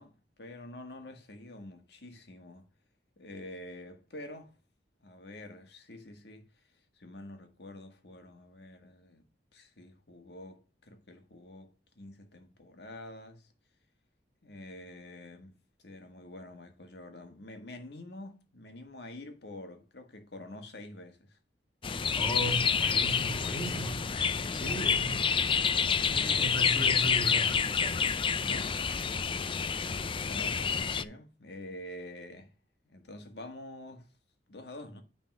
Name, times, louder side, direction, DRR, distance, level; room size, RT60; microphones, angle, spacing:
voice 1, 0.0-2.7 3.2-4.6 5.0-6.7 6.9-9.2 9.5-13.5 14.4-21.4 24.5-25.2 28.4-29.4 30.1-32.5 32.9-34.1 34.5-35.0, left 1 dB, 65° left, 1.7 m, -47 dB
sound 1, 21.8-31.0, left 6 dB, 30° left, 0.4 m, -28 dB
voice 2, 22.1-24.1 24.5-25.3 26.0-28.0, right 1 dB, ahead, 2.6 m, -37 dB
9.5 x 4.1 x 5.3 m
head